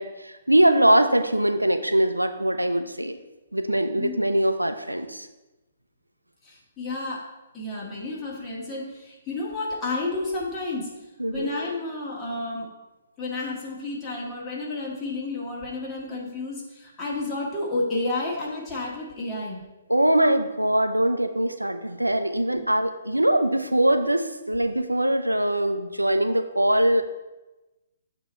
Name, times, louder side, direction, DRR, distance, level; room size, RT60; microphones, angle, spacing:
voice 1, 0.0-3.2 3.5-5.3 11.2-11.5 19.9-27.0, right 1 dB, 90° right, 8 dB, 0.5 m, -22 dB
voice 2, 6.4-7.3 7.5-12.7 13.2-19.6 22.5-22.6, left 2 dB, 15° left, -5 dB, 1.8 m, -31 dB
8.0 x 3.0 x 5.3 m, 1.1 s
figure-of-eight pair, 130°, 0 cm